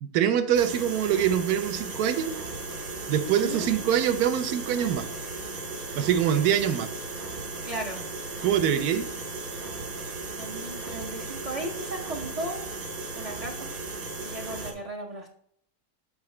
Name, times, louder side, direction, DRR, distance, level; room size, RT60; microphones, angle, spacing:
voice 1, 0.0-2.3 3.1-5.1 6.0-6.9 8.4-9.1, right 9 dB, 85° right, 9 dB, 1.2 m, -24 dB
sound 1, 0.5-14.7, right 3 dB, 65° right, 1.8 m, -36 dB
voice 2, 3.3-3.7 7.6-8.1 10.4-12.6 13.2-13.7 14.2-15.3, right 2 dB, 50° right, 0 dB, 0.4 m, -36 dB
7.8 x 4.7 x 3.2 m, 0.66 s
omnidirectional pair, 1.6 m